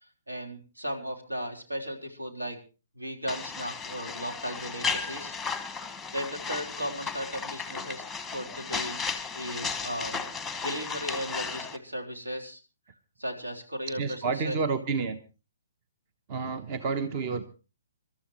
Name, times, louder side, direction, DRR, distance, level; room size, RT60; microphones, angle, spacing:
voice 1, 0.3-2.6 2.9-5.4 6.1-8.1 8.3-9.1 9.3-10.2 10.6-12.6 13.2-14.6, equal, 75° right, 2 dB, 3.5 m, -36 dB
sound 1, 3.3-11.8, left 5 dB, 5° left, 1.3 m, -35 dB
voice 2, 14.0-15.2 16.3-17.5, right 5 dB, 30° right, 11 dB, 1.0 m, -30 dB
26.5 x 13.0 x 3.1 m, 0.32 s
figure-of-eight pair, 125°, 0 cm